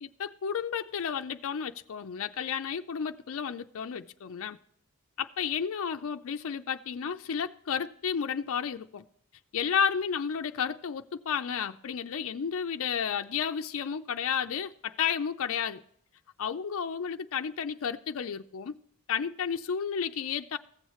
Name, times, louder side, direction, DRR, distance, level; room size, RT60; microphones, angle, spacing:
voice 1, 0.0-4.6 5.2-9.0 9.5-15.8 16.4-18.8 19.1-20.6, left 7 dB, 65° left, 0.4 m, -32 dB
15.5 x 7.2 x 3.1 m
head